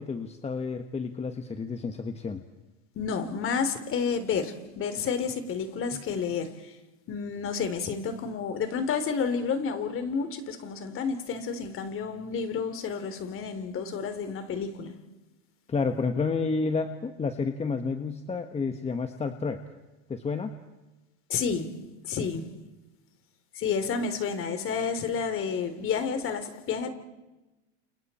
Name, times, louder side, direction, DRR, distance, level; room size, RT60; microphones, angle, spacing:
voice 1, 0.0-2.4 5.9-6.0 15.7-19.6 20.1-20.5, left 4 dB, 20° left, 1.6 m, -30 dB
voice 2, 3.0-6.7 7.1-14.9 21.3-21.7 22.0-22.5 23.5-26.9, left 6 dB, 40° left, 3.7 m, -30 dB
30.0 x 29.0 x 4.5 m
supercardioid pair, 110°, 33 cm